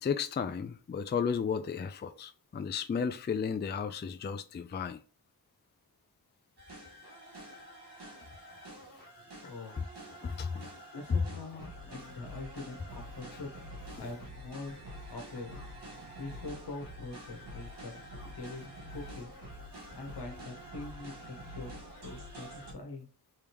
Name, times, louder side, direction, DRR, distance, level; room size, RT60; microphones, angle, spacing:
voice 1, 0.0-5.0 10.2-10.7, left 6 dB, 30° left, 0.4 m, -34 dB
sound 1, 6.6-22.7, equal, 85° right, 1.6 m, -47 dB
voice 2, 9.2-9.8 10.9-13.5 14.0-15.6 16.2-19.3 19.9-23.1, left 3 dB, 80° left, 1.2 m, -44 dB
3.5 x 3.4 x 2.9 m
wide cardioid pair, 60°, 40 cm